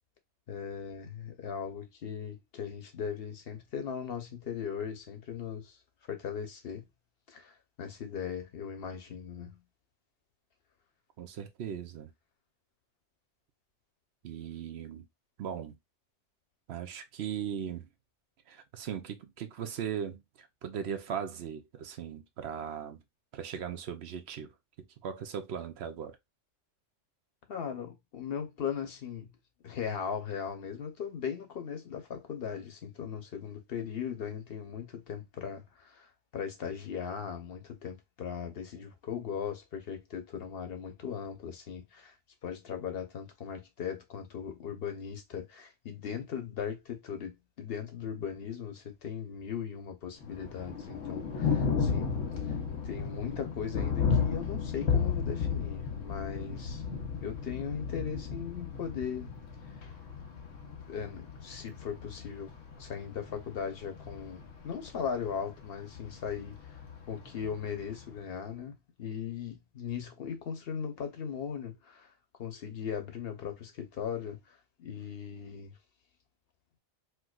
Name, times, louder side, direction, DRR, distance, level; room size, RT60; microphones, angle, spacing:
voice 1, 0.5-5.8 6.1-6.9 7.3-9.6 27.5-29.3 29.6-42.1 42.4-52.2 52.8-56.8 57.2-59.4 60.9-62.5 62.8-66.8 67.1-72.1 72.4-75.7, left 7 dB, 55° left, 1.0 m, -38 dB
voice 2, 11.2-12.1 14.2-15.0 15.4-15.8 16.7-17.9 18.5-23.0 23.3-24.5 25.0-26.2, right 8 dB, 65° right, 0.8 m, -38 dB
Thunder, 50.2-68.2, left 6 dB, 90° left, 1.1 m, -34 dB
4.6 x 2.2 x 2.3 m
omnidirectional pair, 1.2 m